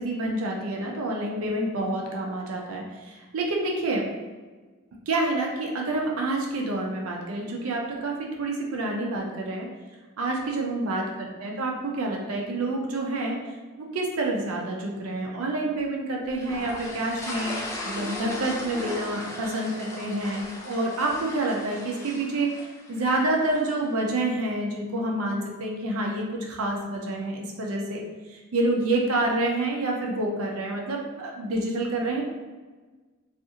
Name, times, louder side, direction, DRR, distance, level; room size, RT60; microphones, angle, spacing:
voice 1, 0.0-4.0 5.1-9.7 10.2-13.4 13.8-22.5 22.9-28.0 28.3-32.2, right 2 dB, 75° right, 0 dB, 0.5 m, -28 dB
sound 1, 16.4-23.7, left 2 dB, 15° left, 0.3 m, -37 dB
2.5 x 2.4 x 2.7 m, 1.3 s
head